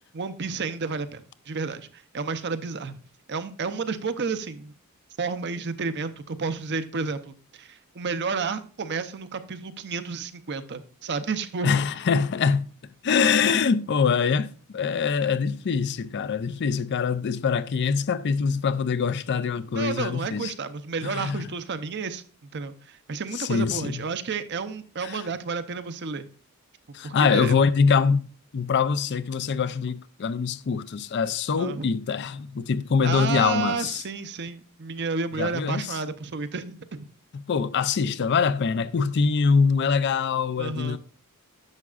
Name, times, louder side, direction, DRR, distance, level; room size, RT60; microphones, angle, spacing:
voice 1, 0.1-3.0 3.3-4.7 5.2-11.7 19.7-26.3 26.9-27.6 31.6-31.9 33.0-37.1 40.6-41.0, right 4 dB, 50° right, 0.6 m, -31 dB
voice 2, 11.6-12.7 13.0-20.5 21.0-21.5 23.3-24.0 25.0-25.2 26.9-28.3 28.5-34.0 35.4-35.9 37.3-41.0, left 5 dB, 50° left, 0.4 m, -24 dB
10.5 x 7.0 x 2.4 m
head